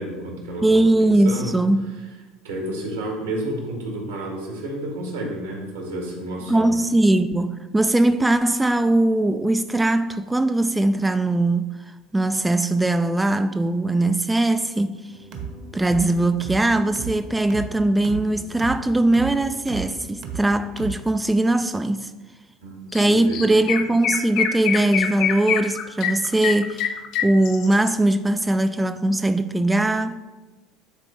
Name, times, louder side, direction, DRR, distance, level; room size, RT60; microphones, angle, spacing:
voice 1, 0.0-1.6 2.4-6.7 22.6-23.4, right 1 dB, 80° right, 1.9 m, -31 dB
voice 2, 0.6-1.8 6.5-11.8 12.1-15.1 15.7-22.1 22.9-30.2, right 2 dB, 10° right, 0.3 m, -20 dB
sound 1, 15.1-21.0, right 5 dB, 55° right, 1.2 m, -35 dB
Chirp tweet, 22.9-23.0 23.3-27.9, left 8 dB, 55° left, 0.6 m, -25 dB
9.7 x 4.2 x 3.4 m
figure-of-eight pair, 70°, 0 cm